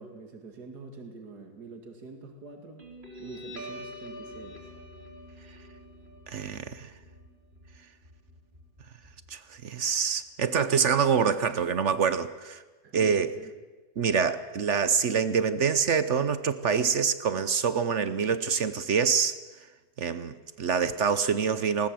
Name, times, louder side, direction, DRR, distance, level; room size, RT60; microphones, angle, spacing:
voice 1, 0.0-2.8 3.2-4.7 12.8-13.5, right 3 dB, 70° right, 5 dB, 2.8 m, -45 dB
Guitar, 2.8-9.8, equal, 30° right, 4.4 m, -46 dB
voice 2, 6.3-6.9 9.3-12.6 12.9-13.3 14.0-19.3 20.0-21.9, right 6 dB, 55° right, 14 dB, 1.0 m, -26 dB
20.0 x 19.0 x 7.7 m, 1.2 s
omnidirectional pair, 1.7 m